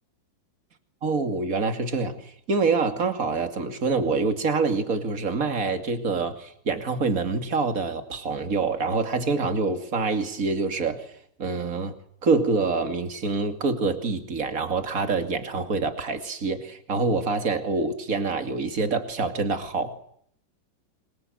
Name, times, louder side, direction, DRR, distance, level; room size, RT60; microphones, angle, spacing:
voice 1, 1.0-11.1 11.4-11.9 12.2-20.0, right 4 dB, 45° right, 8 dB, 2.8 m, -26 dB
27.5 x 24.0 x 7.8 m, 0.68 s
omnidirectional pair, 2.0 m